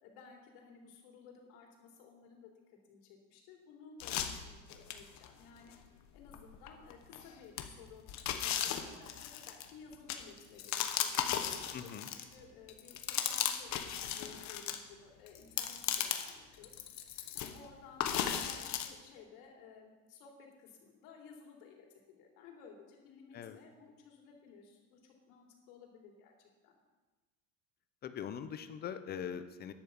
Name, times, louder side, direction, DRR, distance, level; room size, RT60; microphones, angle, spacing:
voice 1, 0.0-2.5 2.9-8.0 8.4-16.7 17.0-25.0 25.3-26.3 26.6-26.7, left 5 dB, 90° left, 0 dB, 3.2 m, -56 dB
sound 1, 4.0-5.3 5.7-5.8 6.3-7.2 7.6-12.4 12.7-14.8 15.3-16.4 16.6-17.6 18.0-18.9, left 9 dB, 45° left, 1.0 m, -36 dB
voice 2, 11.7-12.1 23.3-23.6 28.0-29.7, left 8 dB, 25° left, 11 dB, 0.5 m, -42 dB
10.5 x 8.5 x 7.1 m, 1.3 s
cardioid pair, 165°, 41 cm